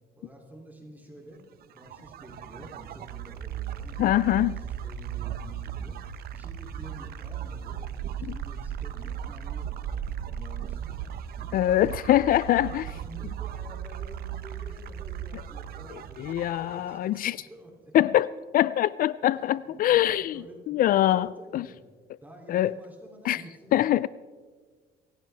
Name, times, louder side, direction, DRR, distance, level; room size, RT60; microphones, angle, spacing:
voice 1, 0.2-1.4 1.7-4.1 4.4-6.0 6.3-11.1 11.4-11.9 12.7-18.0 19.7-21.8 22.2-23.9, right 1 dB, 10° right, 2.9 m, -49 dB
sound 1, 1.6-17.3, right 9 dB, 65° right, 0.9 m, -37 dB
voice 2, 4.0-4.5 11.5-12.9 16.2-17.4 17.9-18.3 18.5-21.3 21.5-21.6 22.5-22.7 23.3-23.4 23.7-24.1, left 13 dB, 55° left, 0.4 m, -23 dB
24.5 x 16.0 x 3.4 m
cardioid pair, 110°, 17 cm